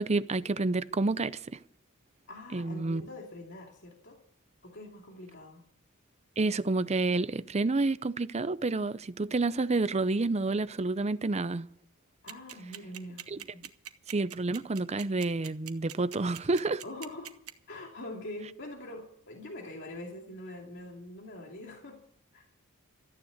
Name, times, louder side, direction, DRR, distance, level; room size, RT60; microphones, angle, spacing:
voice 1, 0.0-1.6 2.5-3.0 6.4-11.7 13.3-13.4 14.1-16.8, right 3 dB, 30° right, 0.6 m, -29 dB
voice 2, 2.3-4.2 4.6-5.6 12.2-13.2 13.5-13.6 16.8-17.3 17.7-22.0 22.3-22.5, left 1 dB, 55° left, 2.6 m, -44 dB
sound 1, 12.3-17.5, right 11 dB, 85° right, 1.1 m, -42 dB
14.5 x 9.8 x 8.0 m
head